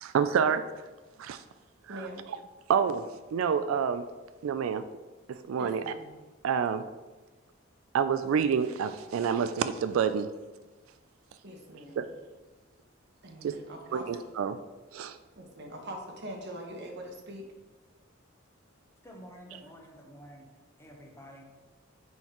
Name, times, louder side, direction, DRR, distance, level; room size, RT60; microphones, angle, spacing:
voice 1, 0.0-0.6 1.2-1.4 1.9-2.4 2.7-3.0 3.3-4.0 4.4-4.8 5.3-5.9 6.4-6.9 7.9-10.3 12.0-12.1 13.4-13.6 13.9-14.6 14.9-15.2, right 7 dB, 90° right, 11 dB, 0.3 m, -28 dB
voice 2, 1.9-2.2 5.6-6.1 11.4-12.0 13.2-14.1 15.4-17.4, right 1 dB, 60° right, 2 dB, 1.2 m, -42 dB
voice 3, 19.0-20.5 20.8-21.4, equal, 15° left, 1 dB, 0.9 m, -49 dB
9.0 x 4.5 x 3.0 m, 1.2 s
head